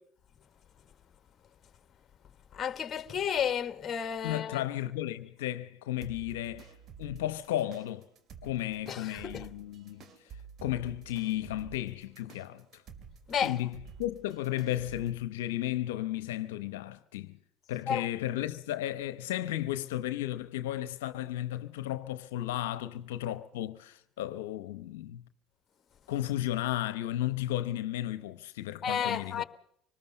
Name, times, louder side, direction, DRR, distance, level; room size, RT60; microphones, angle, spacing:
voice 1, 2.5-4.6 8.9-9.5 13.3-13.6 17.9-18.1 28.8-29.4, left 8 dB, 40° left, 1.3 m, -32 dB
voice 2, 4.2-6.7 7.0-8.0 8.4-10.0 10.6-12.8 13.4-13.7 14.0-17.4 17.7-25.2 26.1-29.4, left 13 dB, 80° left, 0.8 m, -34 dB
sound 1, 6.0-15.2, right 7 dB, 50° right, 2.4 m, -51 dB
25.0 x 20.0 x 5.4 m
hypercardioid pair, 70°, 0 cm